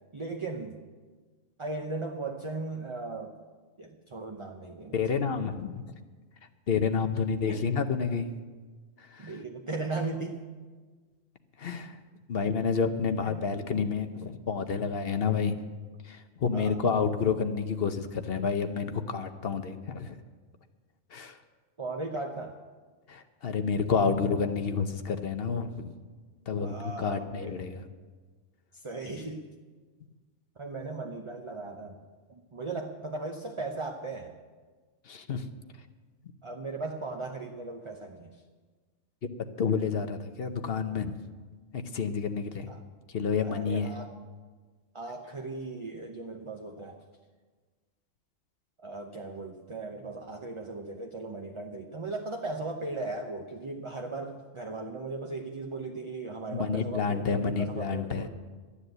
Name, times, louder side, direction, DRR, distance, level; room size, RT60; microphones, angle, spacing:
voice 1, 0.1-0.8 1.6-3.4 3.8-5.0 7.5-7.6 9.2-10.4 13.2-13.3 16.5-16.8 21.8-22.6 26.6-27.6 28.8-29.5 30.6-32.0 32.3-34.4 36.4-38.4 42.7-42.8 43.4-44.1 44.9-47.0 48.8-58.3, right 3 dB, 30° right, 2 dB, 0.7 m, -37 dB
voice 2, 4.9-5.8 6.7-8.3 9.0-9.4 11.6-12.0 12.3-15.6 16.0-20.2 21.1-21.4 23.1-25.9 26.5-27.9 35.1-35.5 39.6-41.1 41.7-42.7 43.1-43.9 56.5-58.3, left 5 dB, 55° left, 9 dB, 0.9 m, -29 dB
13.0 x 10.0 x 7.9 m, 1.4 s
omnidirectional pair, 1.4 m